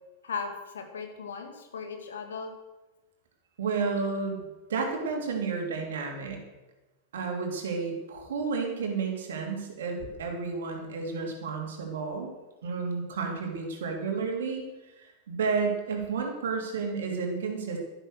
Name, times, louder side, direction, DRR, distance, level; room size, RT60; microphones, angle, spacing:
voice 1, 0.2-2.5, left 5 dB, 65° left, 5 dB, 2.3 m, -37 dB
voice 2, 3.6-6.4 7.1-12.3 12.6-14.6 15.0-17.8, right 4 dB, 60° right, 2 dB, 3.1 m, -31 dB
12.0 x 11.5 x 6.5 m, 1.1 s
figure-of-eight pair, 90°, 0 cm